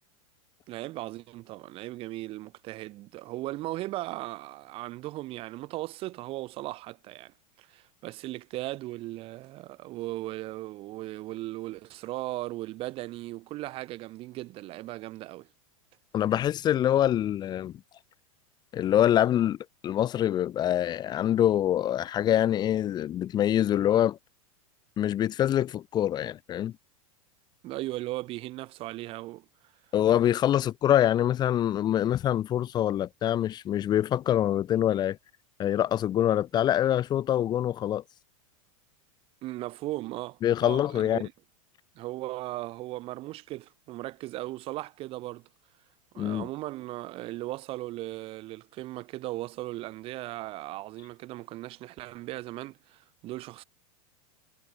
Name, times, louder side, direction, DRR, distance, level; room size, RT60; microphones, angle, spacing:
voice 1, 0.7-15.5 27.6-29.4 39.4-41.3 41.9-45.4 46.1-53.6, right 17 dB, 30° right, 5.1 m, -37 dB
voice 2, 16.1-17.7 18.7-19.6 19.8-24.2 25.0-26.7 29.9-35.2 35.6-38.0 40.4-41.3 46.2-46.5, left 11 dB, 25° left, 6.6 m, -25 dB
supercardioid pair, 165°, 18 cm